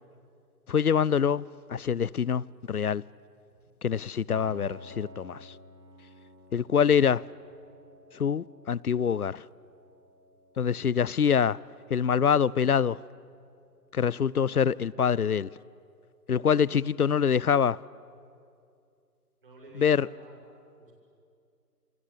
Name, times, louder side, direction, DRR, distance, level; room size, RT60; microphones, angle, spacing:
voice 1, 0.7-1.4 1.7-3.0 3.8-5.5 6.5-7.2 8.2-9.4 10.6-11.6 11.9-13.0 13.9-15.5 16.3-17.8 19.8-20.1, left 7 dB, 65° left, 0.6 m, -25 dB
voice 2, 3.5-3.9 19.4-20.4 20.7-20.9, right 1 dB, 35° right, 6.6 m, -52 dB
Piano, 4.3-13.9, equal, 85° right, 6.4 m, -53 dB
28.0 x 24.5 x 8.7 m
figure-of-eight pair, 175°, 49 cm